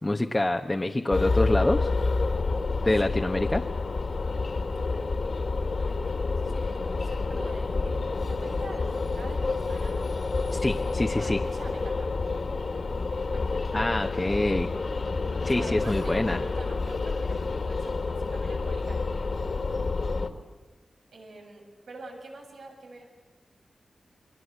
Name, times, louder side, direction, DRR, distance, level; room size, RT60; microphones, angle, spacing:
voice 1, 0.0-1.9 2.8-3.7 10.5-11.4 13.7-14.7 15.4-16.4, left 1 dB, 20° left, 3 dB, 1.1 m, -26 dB
sound 1, 1.1-20.3, left 3 dB, 50° left, 2.2 m, -29 dB
voice 2, 5.8-10.0 11.2-12.1 13.3-13.8 15.5-20.2 21.1-23.1, right 2 dB, 85° right, 0 dB, 7.4 m, -46 dB
29.0 x 23.0 x 8.3 m, 1.3 s
wide cardioid pair, 115°, 0 cm